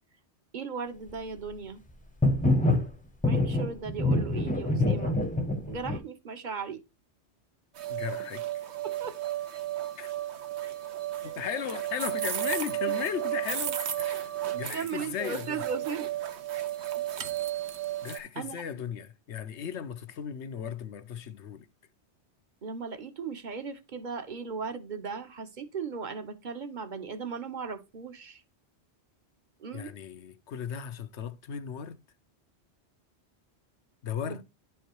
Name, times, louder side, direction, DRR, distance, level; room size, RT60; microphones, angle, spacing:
voice 1, 0.5-1.8 3.2-5.2 5.7-6.8 8.8-9.2 10.6-10.8 11.2-11.4 14.5-16.1 17.0-17.1 18.3-18.6 22.6-28.4 29.6-29.9 34.2-34.4, right 5 dB, 45° right, 1.1 m, -37 dB
sound 1, 2.2-2.9 3.2-6.0, left 2 dB, 10° left, 0.7 m, -25 dB
sound 2, 7.8-18.2, right 12 dB, 75° right, 1.1 m, -33 dB
voice 2, 7.9-8.4 10.0-10.1 11.2-14.3 14.5-15.6 18.0-21.7 29.7-32.0 34.0-34.4, left 8 dB, 85° left, 1.1 m, -36 dB
11.0 x 4.6 x 3.0 m
omnidirectional pair, 1.1 m